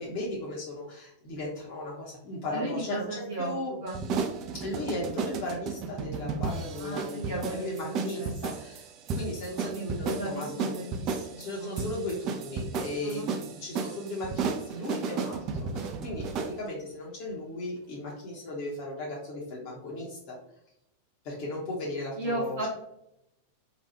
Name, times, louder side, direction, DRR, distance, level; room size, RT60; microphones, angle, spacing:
voice 1, 0.0-3.7 4.5-8.9 9.1-10.8 11.4-20.4 21.2-22.6, left 1 dB, 45° left, -5 dB, 0.8 m, -36 dB
voice 2, 2.5-4.0 6.7-8.3 9.6-12.0 13.0-13.3 22.2-22.7, right 1 dB, 70° right, -6 dB, 0.8 m, -36 dB
sound 1, 3.9-16.6, right 5 dB, 35° right, 0.4 m, -34 dB
3.9 x 2.3 x 2.9 m, 0.83 s
figure-of-eight pair, 90°, 0 cm